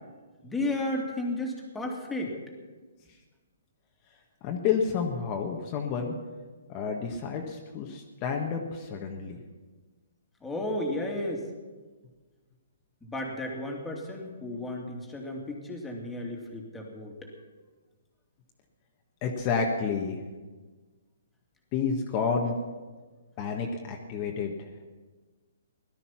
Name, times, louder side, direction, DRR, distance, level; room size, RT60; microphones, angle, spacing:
voice 1, 0.4-2.4 10.4-11.5 13.0-17.3, left 1 dB, 10° left, 0 dB, 2.6 m, -33 dB
voice 2, 4.4-6.1 6.7-9.4 19.2-20.2 21.7-22.6 23.4-24.7, left 6 dB, 30° left, 1 dB, 1.6 m, -30 dB
17.0 x 12.5 x 6.0 m, 1.3 s
hypercardioid pair, 145°, 0 cm